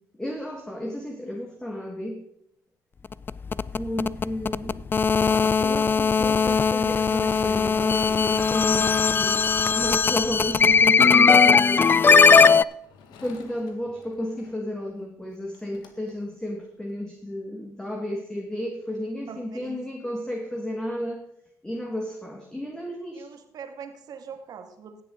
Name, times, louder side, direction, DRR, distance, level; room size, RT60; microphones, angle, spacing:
voice 1, 0.2-2.2 3.7-4.8 5.6-9.5 9.8-11.9 13.2-21.2 21.6-23.3, left 1 dB, 10° left, 1 dB, 1.8 m, -33 dB
sound 1, 3.1-12.6, left 5 dB, 30° left, 0.4 m, -19 dB
Engine / Mechanisms, 6.4-10.2 11.6-14.5 15.2-15.3 15.5-16.1, left 6 dB, 75° left, 1.6 m, -45 dB
voice 2, 19.3-19.8 23.2-25.0, right 6 dB, 60° right, 6 dB, 1.8 m, -42 dB
17.0 x 7.0 x 3.8 m, 0.77 s
supercardioid pair, 70°, 8 cm